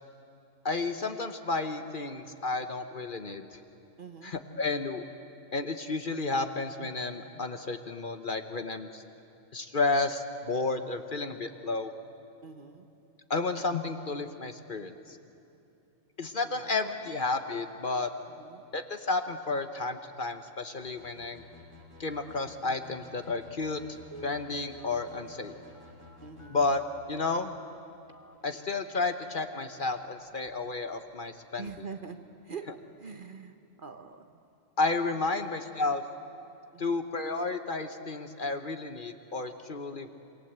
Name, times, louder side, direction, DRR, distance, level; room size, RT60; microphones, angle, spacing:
voice 1, 0.6-3.6 4.2-5.0 5.5-9.0 9.5-11.9 13.3-15.2 16.2-18.1 18.7-21.4 22.0-23.8 24.2-25.6 26.5-26.8 27.1-27.5 28.4-31.7 34.8-36.0 36.8-40.1, left 3 dB, 45° left, 8 dB, 1.1 m, -32 dB
voice 2, 4.0-4.3 12.4-12.9 16.5-16.7 18.4-18.6 26.2-26.6 31.6-32.7 33.0-34.2 35.1-35.4 36.7-37.0, right 5 dB, 45° right, 7 dB, 1.2 m, -44 dB
sound 1, 20.8-26.7, left 3 dB, 75° right, 4.3 m, -53 dB
Telephone, 24.0-28.9 29.4-29.5 29.9-30.1 30.4-30.7 31.1-31.2, equal, 15° left, 1.0 m, -50 dB
27.0 x 24.0 x 7.9 m, 2.8 s
omnidirectional pair, 1.3 m